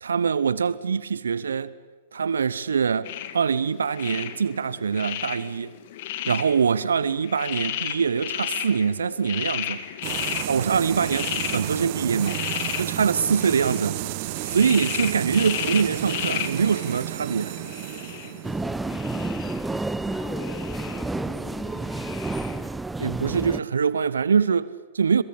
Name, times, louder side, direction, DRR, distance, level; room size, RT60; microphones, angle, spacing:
voice 1, 0.0-1.7 2.1-5.7 6.3-9.8 10.5-12.4 12.8-14.0 14.5-17.5 23.0-25.2, right 6 dB, 80° right, 0.8 m, -24 dB
sound 1, 3.0-22.7, left 11 dB, 55° left, 2.1 m, -35 dB
sound 2, 10.0-19.6, right 19 dB, 50° right, 0.9 m, -32 dB
sound 3, 18.4-23.6, right 2 dB, 5° right, 0.8 m, -30 dB
voice 2, 18.8-22.5, left 2 dB, 10° left, 5.8 m, -43 dB
30.0 x 22.0 x 8.7 m
figure-of-eight pair, 105°, 0 cm